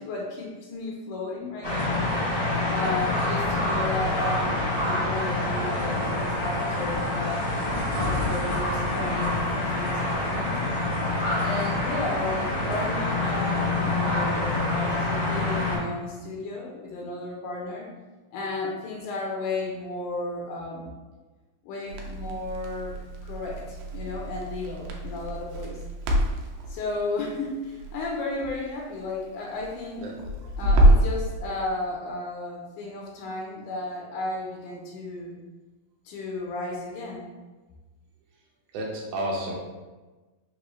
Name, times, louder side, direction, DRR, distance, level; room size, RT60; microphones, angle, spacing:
voice 1, 0.0-2.0 2.7-7.5 8.0-10.6 11.4-17.9 18.3-20.9 21.7-25.8 26.7-30.1 30.6-35.4 36.1-37.3, left 2 dB, 80° left, -2 dB, 2.1 m, -33 dB
sound 1, 1.6-15.8, left 2 dB, 65° left, 0.8 m, -26 dB
Crackle, 21.9-31.2, right 1 dB, 90° right, 2.2 m, -26 dB
voice 2, 38.7-39.5, right 1 dB, 75° right, -1 dB, 2.2 m, -30 dB
5.4 x 2.9 x 3.0 m, 1.2 s
omnidirectional pair, 3.8 m